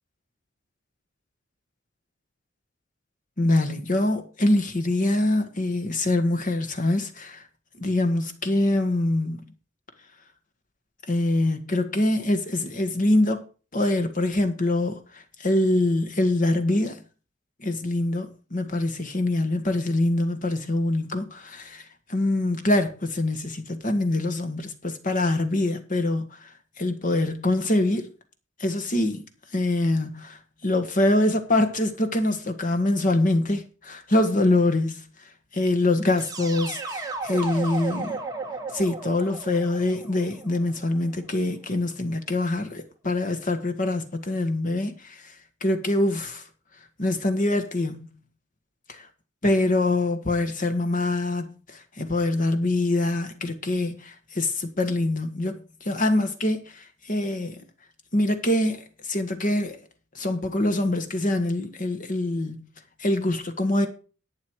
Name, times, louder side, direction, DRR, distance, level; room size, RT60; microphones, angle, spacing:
voice 1, 3.4-7.4 7.8-9.5 11.1-13.4 13.7-17.0 17.6-26.5 26.8-28.1 28.6-29.2 29.5-35.1 35.5-38.2 38.7-45.3 45.6-46.4 47.0-48.1 48.9-49.1 49.4-57.6 58.1-59.8 60.1-62.6 63.0-63.9, left 1 dB, 45° left, 1.5 m, -24 dB
sound 1, 36.2-41.1, right 3 dB, 20° right, 1.6 m, -34 dB
11.0 x 8.2 x 4.7 m
head